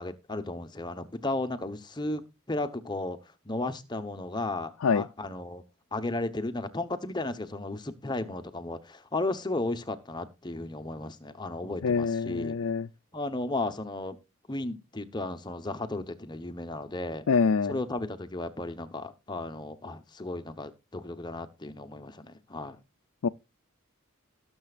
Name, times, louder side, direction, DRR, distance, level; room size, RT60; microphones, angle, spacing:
voice 1, 0.0-3.2 3.4-5.6 5.9-12.5 13.1-14.2 14.5-17.2 17.7-22.8, left 2 dB, 20° left, 1.0 m, -34 dB
voice 2, 11.8-12.9 17.3-17.8 23.2-23.3, left 5 dB, 80° left, 0.4 m, -25 dB
19.0 x 7.0 x 2.4 m
head